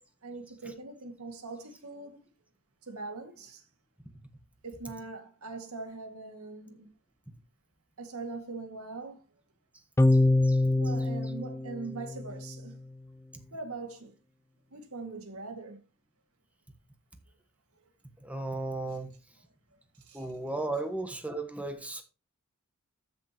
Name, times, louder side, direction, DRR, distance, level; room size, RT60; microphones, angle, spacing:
voice 1, 0.2-2.3 2.8-3.6 4.6-6.9 8.0-9.2 10.7-12.8 13.5-14.1 14.7-15.8 20.0-20.3, right 3 dB, 80° right, 2.2 m, -41 dB
sound 1, 10.0-12.6, left 2 dB, 10° left, 0.3 m, -25 dB
voice 2, 10.1-10.6 18.2-19.1 20.1-22.0, right 2 dB, 5° right, 1.3 m, -35 dB
13.5 x 6.5 x 3.0 m
head